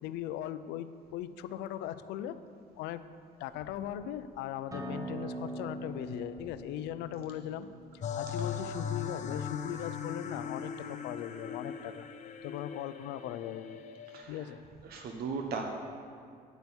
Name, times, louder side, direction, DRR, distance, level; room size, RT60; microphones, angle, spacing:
voice 1, 0.0-2.4 2.8-3.1 3.4-7.7 8.1-12.1 12.4-13.8 14.3-14.6, left 11 dB, 90° left, 13 dB, 0.5 m, -39 dB
Acoustic guitar, 4.7-9.9, right 1 dB, 20° right, 1.2 m, -44 dB
sound 1, 8.0-14.2, left 7 dB, 45° left, 0.7 m, -39 dB
voice 2, 14.1-14.5 14.8-15.6, right 5 dB, 65° right, 2 dB, 1.0 m, -38 dB
9.2 x 6.1 x 7.0 m, 2.3 s
cardioid pair, 110°, 17 cm